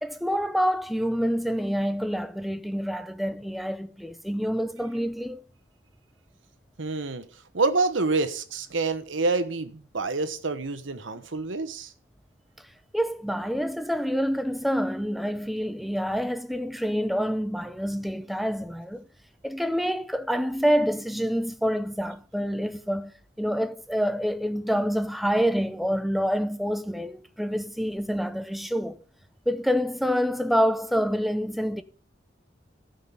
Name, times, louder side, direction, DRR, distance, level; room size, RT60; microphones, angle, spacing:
voice 1, 0.0-5.4 12.9-19.1 19.4-29.0 29.5-31.8, equal, ahead, 0.5 m, -27 dB
voice 2, 6.8-7.2 7.5-11.9, right 3 dB, 80° right, 1.1 m, -27 dB
13.5 x 5.4 x 6.9 m
head